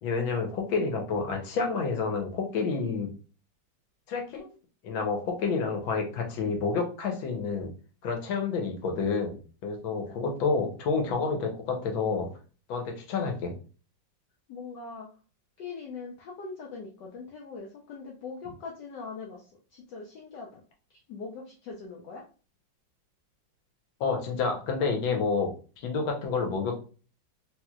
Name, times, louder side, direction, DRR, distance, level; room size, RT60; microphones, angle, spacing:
voice 1, 0.0-3.1 4.1-4.5 4.8-7.7 8.0-12.3 12.7-13.5 24.0-25.5 25.8-26.7, left 4 dB, 90° left, 2 dB, 1.7 m, -29 dB
voice 2, 14.5-15.1 15.6-20.6 21.1-22.2, left 4 dB, 70° left, -1 dB, 1.2 m, -41 dB
3.2 x 3.1 x 2.3 m, 0.36 s
omnidirectional pair, 2.1 m